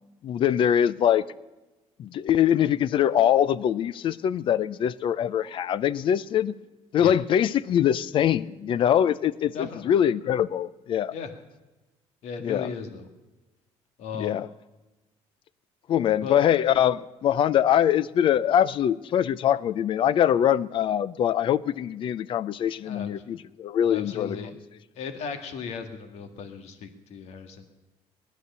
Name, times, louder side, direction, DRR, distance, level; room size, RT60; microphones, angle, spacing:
voice 1, 0.2-1.3 2.0-6.6 6.9-11.1 12.4-12.7 14.1-14.5 15.9-24.5, left 10 dB, 45° left, 0.5 m, -23 dB
voice 2, 9.5-9.9 11.1-11.3 12.2-13.1 14.0-14.4 16.2-16.4 22.8-23.1 23.9-24.5 25.0-27.7, left 6 dB, 65° left, 1.7 m, -36 dB
19.0 x 11.5 x 6.8 m
cardioid pair, 150°, 12 cm